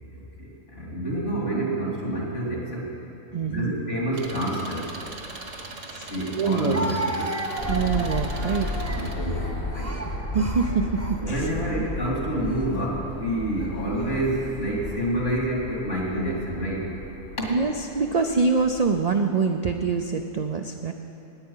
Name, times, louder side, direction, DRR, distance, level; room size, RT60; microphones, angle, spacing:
voice 1, 0.1-2.9 3.5-4.8 6.1-7.3 8.9-9.9 11.2-16.9 17.4-17.5, right 1 dB, 65° left, -2 dB, 2.9 m, -28 dB
voice 2, 3.3-3.7 5.9-6.8 7.7-8.7 10.3-11.5 11.8-11.9 17.5-20.9, right 5 dB, 55° right, 5 dB, 0.4 m, -25 dB
Engine, 4.1-9.1, right 3 dB, 75° right, 1.7 m, -40 dB
Speech, 5.6-5.7 6.7-11.6 12.4-12.6 13.6-14.2, right 1 dB, 15° right, 0.8 m, -34 dB
sound 1, 7.6-19.0, left 2 dB, 45° left, 1.4 m, -34 dB
18.0 x 9.0 x 5.6 m, 2.8 s
omnidirectional pair, 1.3 m